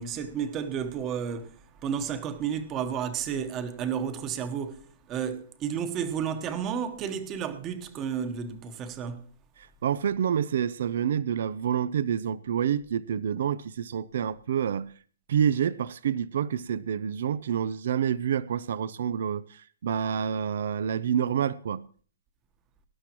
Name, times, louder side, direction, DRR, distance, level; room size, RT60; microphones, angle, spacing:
voice 1, 0.0-1.5 1.8-9.3, right 7 dB, 20° right, 1.2 m, -32 dB
voice 2, 9.8-14.9 15.3-21.8, right 8 dB, 60° right, 0.5 m, -28 dB
19.5 x 11.5 x 3.0 m
hypercardioid pair, 155°, 0 cm